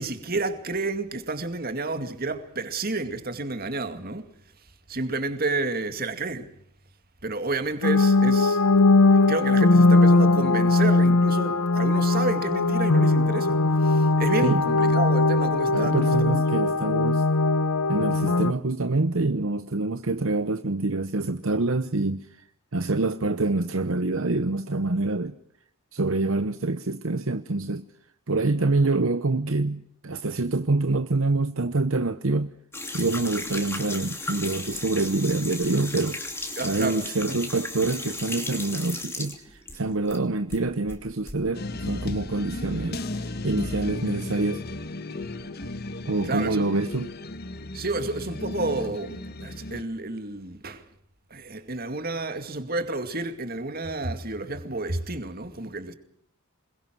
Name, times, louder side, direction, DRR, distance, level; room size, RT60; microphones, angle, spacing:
voice 1, 0.0-4.3 4.9-6.5 7.2-8.6 9.1-16.7 36.6-37.5 46.2-46.7 47.7-50.8 51.3-55.9, right 2 dB, 40° right, 2.3 m, -30 dB
sound 1, 7.8-18.5, left 2 dB, 90° left, 0.9 m, -20 dB
voice 2, 15.7-17.2 17.9-22.5 22.7-25.4 25.9-27.8 28.3-32.5 32.9-36.2 36.6-44.6 46.0-47.1, right 2 dB, 65° right, 0.9 m, -26 dB
sound 2, 32.7-40.2 40.5-41.4, left 2 dB, 10° left, 2.8 m, -35 dB
sound 3, 41.5-49.8, left 2 dB, 45° left, 1.2 m, -35 dB
27.5 x 22.0 x 6.2 m
head